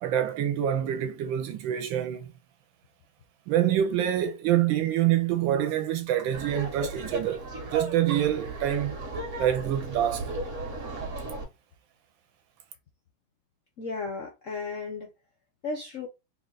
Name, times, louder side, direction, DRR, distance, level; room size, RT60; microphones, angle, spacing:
voice 1, 0.0-2.3 3.5-9.0 9.4-10.3, right 11 dB, 75° right, 1.3 m, -26 dB
Laughter, 6.3-11.4, right 2 dB, 50° right, 1.1 m, -35 dB
voice 2, 13.8-15.1 15.6-16.1, left 3 dB, 65° left, 0.8 m, -34 dB
3.9 x 2.3 x 3.8 m
omnidirectional pair, 2.2 m